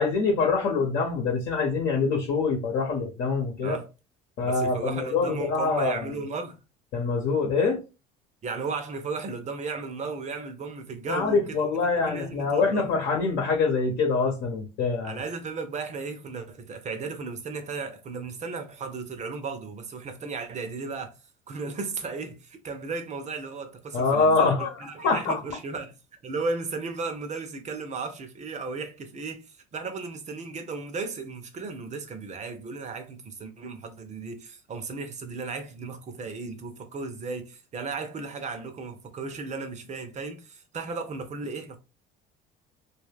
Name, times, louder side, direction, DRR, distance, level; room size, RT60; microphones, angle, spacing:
voice 1, 0.0-3.8 4.4-6.1 6.9-7.8 11.1-15.2 23.9-25.4, left 4 dB, 70° left, 0.9 m, -25 dB
voice 2, 4.4-6.6 8.4-11.6 12.0-12.9 15.0-21.2 21.5-25.9 26.2-41.8, right 4 dB, 35° right, 0.7 m, -35 dB
2.4 x 2.4 x 3.3 m
supercardioid pair, 95°, 20 cm